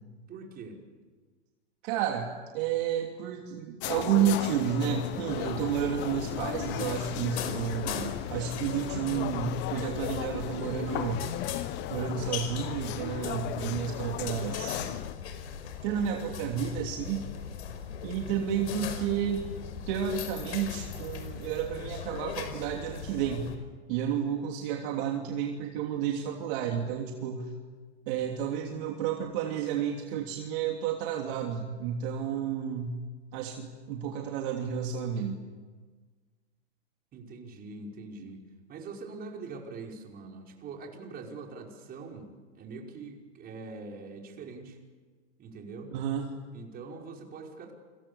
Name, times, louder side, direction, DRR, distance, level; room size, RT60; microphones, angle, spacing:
voice 1, 0.3-0.8 37.1-44.8 45.4-45.9 46.5-47.7, right 4 dB, 25° right, 1 dB, 5.3 m, -43 dB
voice 2, 1.8-11.2 11.9-15.0 15.8-17.3 18.0-19.5 19.9-23.5 23.9-27.5 28.1-33.0 33.3-35.4 45.9-46.3, right 8 dB, 45° right, 2 dB, 3.1 m, -31 dB
sound 1, 3.8-15.1, left 14 dB, 30° left, 1.1 m, -36 dB
sound 2, 5.3-23.6, left 7 dB, 70° left, 5.2 m, -39 dB
29.5 x 26.5 x 7.1 m, 1.4 s
hypercardioid pair, 130°, 35 cm